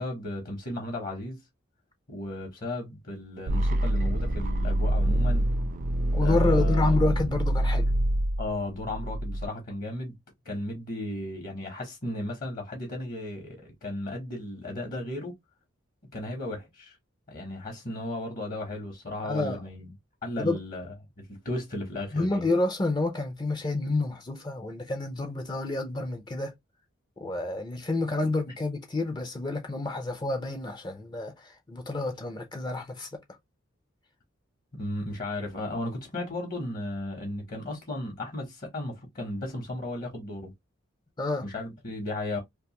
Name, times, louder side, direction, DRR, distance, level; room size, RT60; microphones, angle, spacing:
voice 1, 0.0-1.4 2.1-5.5 6.2-6.9 8.4-10.2 10.4-15.3 16.1-17.0 17.3-19.9 20.2-20.9 21.3-22.5 34.7-40.5 41.4-42.4, left 1 dB, 45° left, 0.9 m, -35 dB
sound 1, 3.5-9.5, right 1 dB, 40° right, 0.4 m, -25 dB
voice 2, 6.1-7.9 19.2-19.6 20.4-20.6 22.1-26.5 27.2-33.1 41.2-41.5, left 2 dB, 20° left, 0.4 m, -29 dB
2.5 x 2.3 x 2.8 m
head